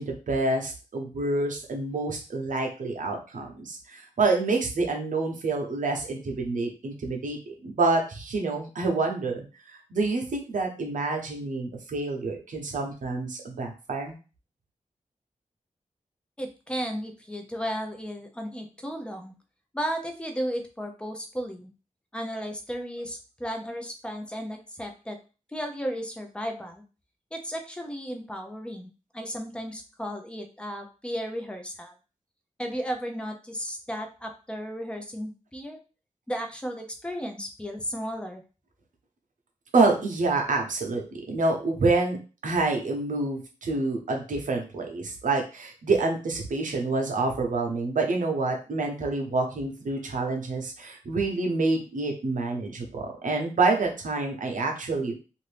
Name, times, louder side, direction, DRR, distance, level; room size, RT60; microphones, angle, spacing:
voice 1, 0.0-9.4 9.9-14.2 39.7-41.0 41.3-42.2 42.4-55.1, right 3 dB, 80° right, 2 dB, 0.8 m, -27 dB
voice 2, 16.4-19.3 19.7-21.7 22.1-25.2 25.5-26.8 27.3-31.9 32.6-35.8 36.3-38.4, equal, 10° left, 4 dB, 0.5 m, -34 dB
2.6 x 2.6 x 3.3 m, 0.34 s
wide cardioid pair, 120°, 13 cm